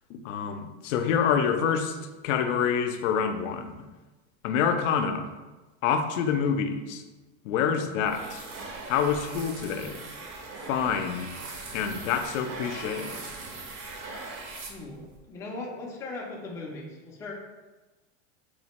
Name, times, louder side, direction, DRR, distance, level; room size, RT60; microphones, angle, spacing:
voice 1, 0.1-2.0 2.2-3.8 4.4-5.3 5.8-7.0 7.4-8.4 8.9-10.0 10.7-11.3 11.7-13.2, left 7 dB, 80° left, 7 dB, 0.5 m, -27 dB
sound 1, 8.0-15.2, right 3 dB, 40° right, 0.6 m, -40 dB
voice 2, 14.7-17.3, left 2 dB, 10° left, -2 dB, 0.3 m, -39 dB
4.2 x 2.0 x 2.9 m, 1.2 s
supercardioid pair, 125°, 38 cm